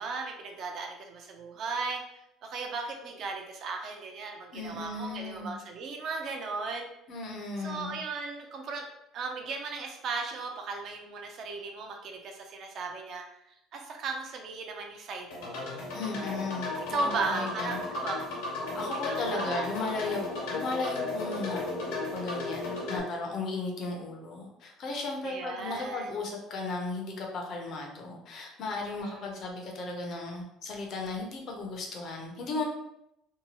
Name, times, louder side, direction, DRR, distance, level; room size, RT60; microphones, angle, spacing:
voice 1, 0.0-2.0 2.4-6.9 7.6-8.9 9.1-15.7 16.9-18.2 18.6-19.7 23.1-23.4 25.2-26.1 29.0-29.3, right 4 dB, 40° right, 2 dB, 0.4 m, -36 dB
voice 2, 4.5-5.6 7.1-8.0 15.9-17.8 18.7-32.6, left 3 dB, 40° left, 1 dB, 0.5 m, -35 dB
sound 1, 15.3-23.0, left 2 dB, 85° left, 1.1 m, -35 dB
2.7 x 2.2 x 2.8 m, 0.82 s
cardioid pair, 170°, 0 cm